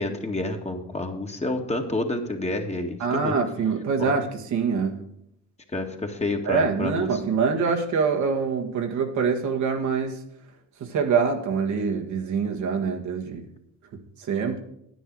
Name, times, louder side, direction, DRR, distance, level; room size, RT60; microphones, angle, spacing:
voice 1, 0.0-3.4 4.0-4.1 5.7-7.2, left 2 dB, 20° left, 3 dB, 2.0 m, -29 dB
voice 2, 3.0-5.1 6.5-10.2 10.8-13.4 14.3-14.6, right 5 dB, 75° right, 2 dB, 1.8 m, -25 dB
10.0 x 9.4 x 4.7 m, 0.76 s
cardioid pair, 90°, 30 cm